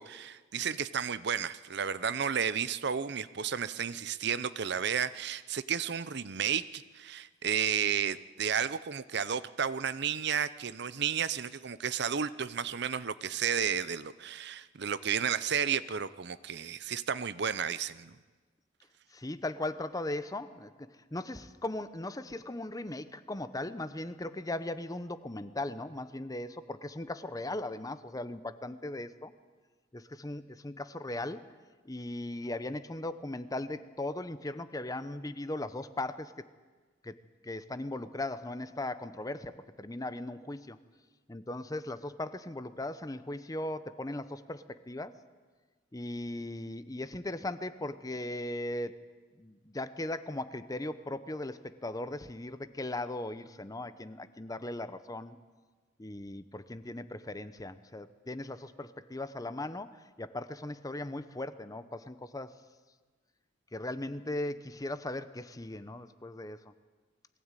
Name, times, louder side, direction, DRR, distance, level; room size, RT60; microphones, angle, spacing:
voice 1, 0.0-18.1, right 7 dB, 65° right, 15 dB, 0.7 m, -32 dB
voice 2, 19.1-20.7 21.1-29.3 29.9-31.5 31.8-36.4 37.0-37.2 37.4-40.8 41.3-45.2 45.9-55.4 56.0-62.5 63.7-66.7, left 1 dB, 20° left, 13 dB, 0.8 m, -38 dB
22.0 x 16.0 x 9.1 m, 1.4 s
head